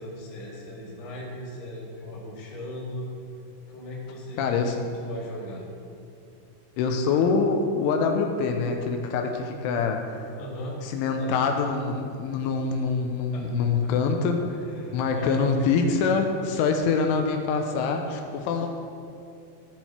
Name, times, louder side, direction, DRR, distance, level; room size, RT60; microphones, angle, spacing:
voice 1, 0.0-3.1 3.7-5.6 10.3-11.6 13.3-13.9 14.6-16.2 18.3-18.5, left 1 dB, 50° left, -5 dB, 3.1 m, -37 dB
voice 2, 4.4-4.9 6.8-10.3 10.8-14.6 14.9-18.7, left 5 dB, 90° left, 4 dB, 3.3 m, -25 dB
15.5 x 7.2 x 4.4 m, 2.5 s
omnidirectional pair, 5.4 m